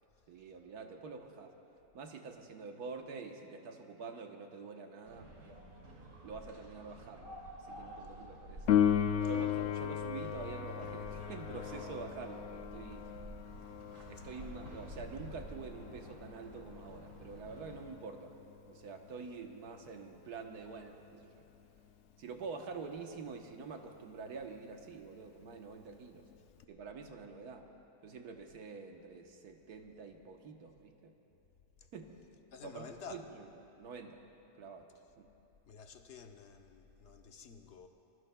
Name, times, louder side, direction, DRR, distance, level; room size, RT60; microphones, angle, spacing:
voice 1, 0.3-1.5 1.9-5.8 6.2-8.8 9.2-13.1 14.1-18.4 18.7-21.4 22.2-26.3 26.7-27.7 28.0-31.1 31.9-32.2 32.6-33.5 33.8-34.2 34.6-34.9 35.2-35.3, right 4 dB, 70° right, 4 dB, 1.6 m, -47 dB
sound 1, 5.0-17.9, right 1 dB, 90° right, 3.1 m, -50 dB
Piano, 8.7-19.1 26.6-26.7, left 9 dB, 85° left, 0.6 m, -36 dB
voice 2, 32.5-33.3 35.7-37.9, left 6 dB, 50° left, 5 dB, 0.9 m, -51 dB
25.0 x 21.0 x 2.3 m, 2.8 s
omnidirectional pair, 1.8 m